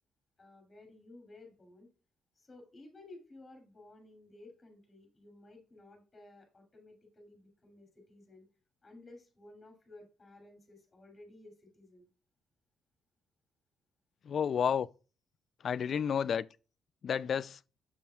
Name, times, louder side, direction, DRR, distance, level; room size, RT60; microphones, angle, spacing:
voice 1, 0.4-1.9 2.4-8.5 8.8-12.1, left 2 dB, 25° left, 2.7 m, -55 dB
voice 2, 14.2-14.9 15.6-16.5 17.0-17.6, left 7 dB, 55° left, 0.3 m, -31 dB
7.2 x 7.1 x 2.3 m
cardioid pair, 90°, 0 cm